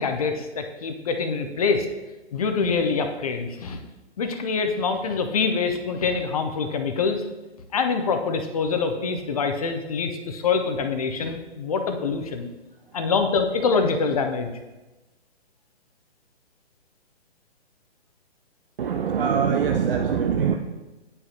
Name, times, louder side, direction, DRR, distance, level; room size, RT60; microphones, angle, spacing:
voice 1, 0.0-1.9 2.3-3.8 4.2-7.2 7.7-12.5 12.9-14.5, left 5 dB, 35° left, 6 dB, 0.5 m, -25 dB
voice 2, 18.8-20.6, right 7 dB, 55° right, 4 dB, 0.5 m, -23 dB
9.7 x 5.0 x 2.8 m, 1.1 s
figure-of-eight pair, 140°, 34 cm